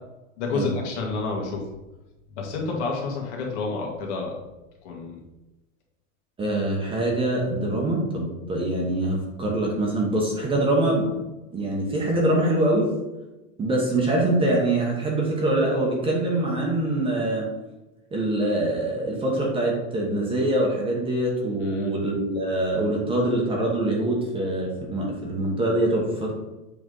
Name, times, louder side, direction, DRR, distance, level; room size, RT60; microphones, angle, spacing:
voice 1, 0.4-1.6 2.4-4.4 4.8-5.2 21.6-21.9, left 4 dB, 60° left, 0 dB, 1.8 m, -29 dB
voice 2, 6.4-11.1 11.5-12.9 13.6-17.5 18.1-26.3, right 1 dB, 15° right, -1 dB, 0.9 m, -24 dB
7.6 x 3.4 x 3.9 m, 1.0 s
supercardioid pair, 155°, 39 cm